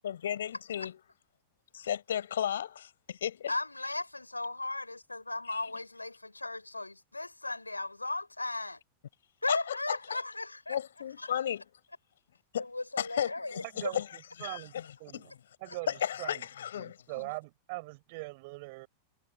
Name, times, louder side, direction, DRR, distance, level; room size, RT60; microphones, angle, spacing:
voice 1, 0.0-1.0 1.7-3.5 5.5-5.6 9.5-10.2 10.7-11.6 12.5-12.7 13.0-14.8 15.1-15.3 15.9-17.0, left 9 dB, 65° left, 7.0 m, -34 dB
voice 2, 3.5-8.8 9.4-10.8 11.2-11.3 12.6-14.0, left 2 dB, 85° left, 6.0 m, -36 dB
voice 3, 13.6-14.7 15.0-15.3 15.6-16.5 16.7-18.9, right 25 dB, 50° right, 6.7 m, -42 dB
figure-of-eight pair, 90°, 0 cm